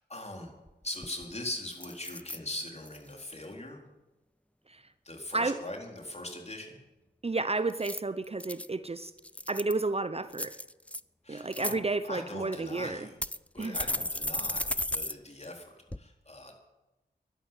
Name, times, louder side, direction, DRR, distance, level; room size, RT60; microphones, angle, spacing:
voice 1, 0.1-0.5 0.8-3.8 5.0-6.8 11.2-13.2 13.5-16.5, left 1 dB, 35° left, 2 dB, 4.1 m, -41 dB
sound 1, 0.7-0.8 1.0-1.4 1.8-2.4 2.9-3.2 7.7-8.7 9.2-9.8 10.3-11.0 11.4-11.8 12.5-12.6 13.2-15.1 15.4-15.5 15.9-16.0, left 1 dB, 5° left, 0.5 m, -34 dB
voice 2, 7.2-9.1 9.5-10.5 11.3-13.1 13.6-13.8, right 3 dB, 35° right, 13 dB, 0.8 m, -31 dB
11.5 x 11.5 x 9.1 m, 1.0 s
cardioid pair, 45°, 18 cm